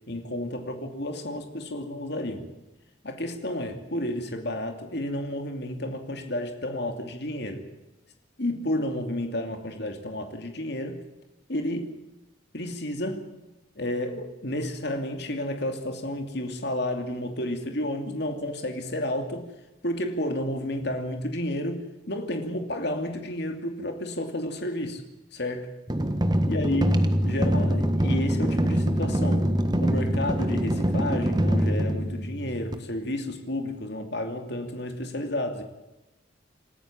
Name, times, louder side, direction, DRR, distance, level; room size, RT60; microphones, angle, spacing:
voice 1, 0.1-2.5 3.0-7.7 8.4-11.0 11.5-12.0 12.5-13.3 13.8-19.5 19.8-25.0 25.3-25.7 26.5-29.5 29.8-35.6, left 1 dB, 55° left, 2.7 m, -31 dB
sound 1, 25.9-32.7, equal, 20° right, 1.4 m, -24 dB
27.5 x 14.5 x 7.5 m
head